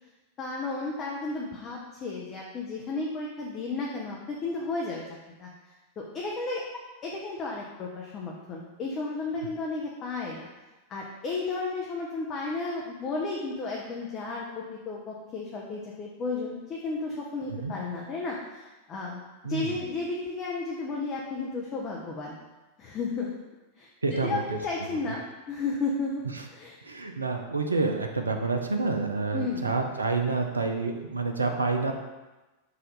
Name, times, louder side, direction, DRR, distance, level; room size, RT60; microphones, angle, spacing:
voice 1, 0.4-5.0 5.4-5.5 6.0-6.6 7.0-10.5 10.9-22.4 22.8-23.4 23.8-26.8 29.3-29.7, left 3 dB, 30° left, -3 dB, 0.5 m, -33 dB
voice 2, 19.4-19.8 24.0-24.9 26.4-26.5 26.8-31.9, right 3 dB, 75° right, 4 dB, 0.4 m, -28 dB
4.2 x 2.5 x 3.9 m, 1.1 s
figure-of-eight pair, 90°, 0 cm